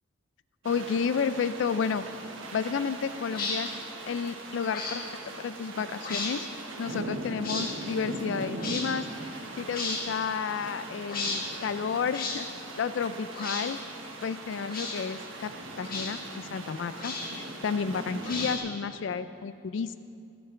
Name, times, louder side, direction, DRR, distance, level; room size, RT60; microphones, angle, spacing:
voice 1, 0.6-2.1 2.5-3.7 4.1-5.0 5.4-6.5 6.8-12.5 12.8-13.8 14.2-15.5 15.8-20.0, left 6 dB, 65° left, 13 dB, 0.4 m, -31 dB
sound 1, 0.6-18.6, right 2 dB, 80° right, 1.4 m, -40 dB
sound 2, 3.3-3.6 4.7-5.0 6.0-6.3 7.4-7.7 8.6-8.9 9.7-10.0 11.1-11.4 12.1-12.4 13.3-13.7 14.7-15.0 15.9-16.1 17.0-17.4 18.2-18.8, left 3 dB, 45° left, 1.9 m, -33 dB
18.0 x 12.0 x 3.3 m, 2.5 s
head